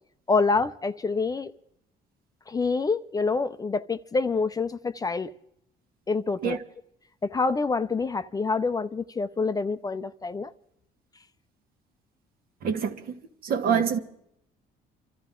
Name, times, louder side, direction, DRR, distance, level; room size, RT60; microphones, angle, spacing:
voice 1, 0.3-1.5 2.5-5.3 6.1-6.6 7.2-10.5 13.7-13.8, left 4 dB, 20° left, 0.5 m, -27 dB
voice 2, 12.6-14.0, right 7 dB, 60° right, 1.5 m, -26 dB
28.5 x 13.0 x 3.7 m
cardioid pair, 110°, 17 cm